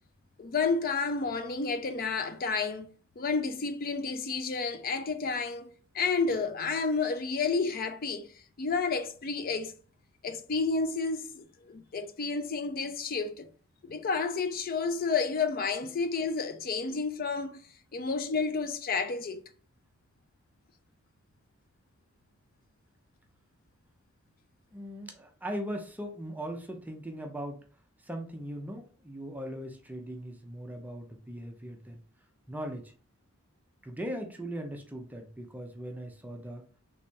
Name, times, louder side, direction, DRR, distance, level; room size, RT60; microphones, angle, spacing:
voice 1, 0.4-2.9 3.2-8.3 8.6-9.7 10.2-13.5 13.8-17.6 17.9-19.4, left 4 dB, 45° left, 0.4 m, -30 dB
voice 2, 24.7-27.6 28.0-32.0 32.5-32.9 33.8-36.6, equal, 10° right, 0.5 m, -39 dB
3.4 x 3.2 x 2.7 m
head